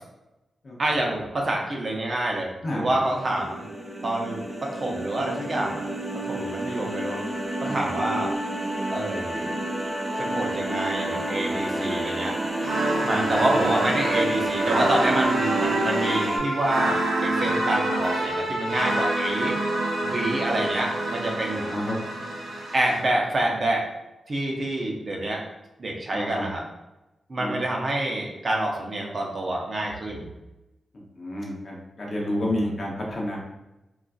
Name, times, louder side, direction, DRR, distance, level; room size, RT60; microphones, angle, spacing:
voice 1, 0.8-3.7 4.0-5.8 6.3-7.2 7.6-8.3 8.9-9.5 10.2-12.3 13.0-19.6 20.0-21.7 22.7-23.8 24.3-25.4 25.8-26.6 27.3-30.2 32.2-32.7, right 1 dB, 40° right, 0 dB, 0.5 m, -27 dB
sound 1, 3.0-16.4, right 1 dB, 10° right, 0.8 m, -30 dB
sound 2, 12.6-23.0, right 2 dB, 90° right, 0.6 m, -27 dB
voice 2, 13.0-13.4 21.5-22.0 26.1-26.4 27.4-27.6 31.2-33.4, left 1 dB, 40° left, -2 dB, 0.7 m, -30 dB
3.8 x 2.3 x 2.3 m, 0.97 s
wide cardioid pair, 150°, 0 cm